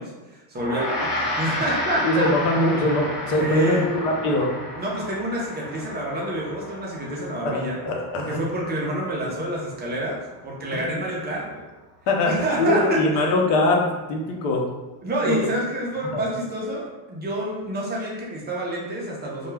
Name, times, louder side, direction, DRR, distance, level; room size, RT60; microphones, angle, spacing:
voice 1, 0.0-2.3 3.2-3.9 4.8-7.8 8.3-11.6 12.2-13.3 15.0-19.5, right 1 dB, 25° right, -4 dB, 0.4 m, -28 dB
Gong, 0.6-10.1, left 1 dB, 25° left, 1.0 m, -32 dB
voice 2, 2.0-4.5 7.4-8.4 10.7-10.8 12.1-13.8 14.1-14.6 15.3-15.4 16.1-16.2, left 2 dB, 90° left, 0 dB, 0.7 m, -22 dB
2.2 x 2.2 x 3.2 m, 1.1 s
cardioid pair, 130°, 46 cm